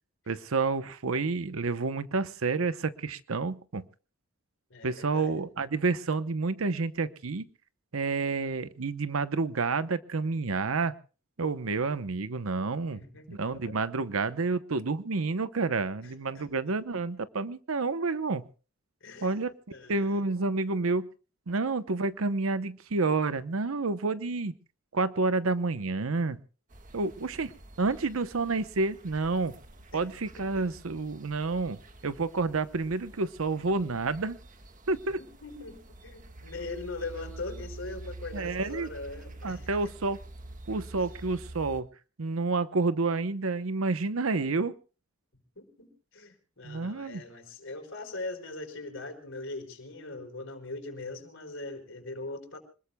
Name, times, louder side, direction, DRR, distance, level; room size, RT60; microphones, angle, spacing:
voice 1, 0.3-3.8 4.8-7.4 7.9-10.9 11.4-13.0 13.3-18.5 19.2-19.5 19.9-21.1 21.5-24.5 24.9-26.4 26.9-27.5 27.8-29.6 29.9-31.8 32.0-34.4 34.9-35.2 38.3-38.9 39.4-40.2 40.7-41.9 42.2-44.7 46.6-47.2, right 3 dB, 85° right, 13 dB, 0.8 m, -29 dB
voice 2, 4.7-5.4 12.9-13.8 16.0-16.5 19.0-19.3 19.7-20.2 29.9-30.0 30.4-30.6 35.2-39.9 41.0-41.1 45.6-52.6, left 2 dB, 65° left, 6 dB, 4.5 m, -41 dB
sound 1, 26.7-41.8, right 2 dB, 40° right, 1.5 m, -47 dB
26.5 x 20.5 x 2.2 m, 0.36 s
head